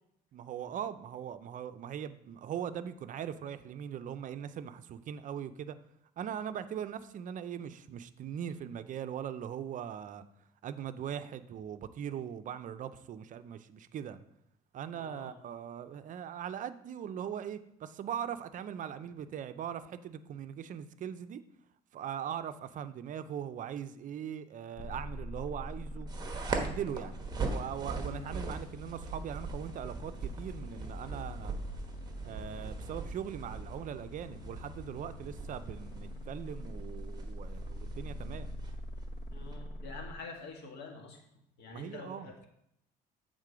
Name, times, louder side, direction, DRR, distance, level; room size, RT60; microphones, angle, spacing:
voice 1, 0.3-5.8 6.2-10.2 10.6-14.2 14.7-21.4 21.9-26.1 26.5-27.2 27.5-31.6 32.2-38.5 41.7-42.3, right 9 dB, 50° right, 11 dB, 0.5 m, -40 dB
voice 2, 14.9-15.3 28.0-28.3 39.3-41.2 41.6-42.5, left 3 dB, 80° left, 2 dB, 1.5 m, -47 dB
sound 1, 24.8-40.1, left 1 dB, 55° left, 0.8 m, -44 dB
sound 2, 26.1-39.6, right 3 dB, 25° right, 1.1 m, -41 dB
8.1 x 3.7 x 4.9 m, 0.79 s
cardioid pair, 110°, 17 cm